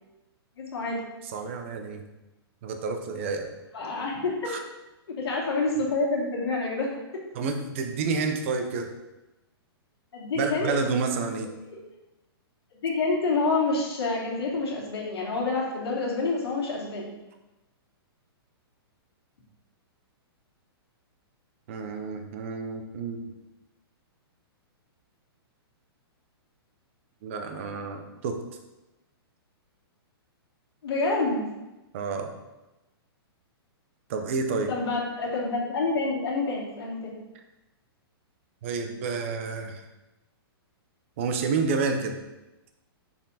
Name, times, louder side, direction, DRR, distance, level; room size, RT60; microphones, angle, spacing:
voice 1, 0.6-1.0 3.7-4.6 5.2-6.9 10.1-10.7 11.7-11.8 12.8-17.1 30.8-31.4 34.7-37.1, left 3 dB, 70° left, -4 dB, 2.3 m, -27 dB
voice 2, 1.2-2.0 2.6-3.5 4.5-4.6 7.3-8.9 10.4-11.5 21.7-23.2 27.2-28.4 31.9-32.3 34.1-34.7 38.6-39.8 41.2-42.2, right 4 dB, 30° right, 5 dB, 0.6 m, -29 dB
6.1 x 4.3 x 4.1 m, 1.0 s
hypercardioid pair, 175°, 13 cm